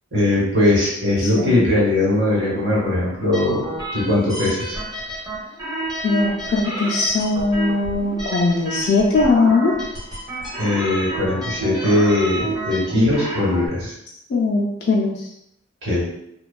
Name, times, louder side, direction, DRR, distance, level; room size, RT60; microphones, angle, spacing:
voice 1, 0.1-4.8 10.6-13.9 15.8-16.1, left 1 dB, 55° right, -5 dB, 1.0 m, -20 dB
voice 2, 1.2-1.5 6.0-9.7 14.3-15.3, left 3 dB, 50° left, -5 dB, 0.3 m, -20 dB
sound 1, 3.3-13.7, right 1 dB, 20° right, 0.5 m, -30 dB
2.6 x 2.2 x 2.3 m, 0.78 s
head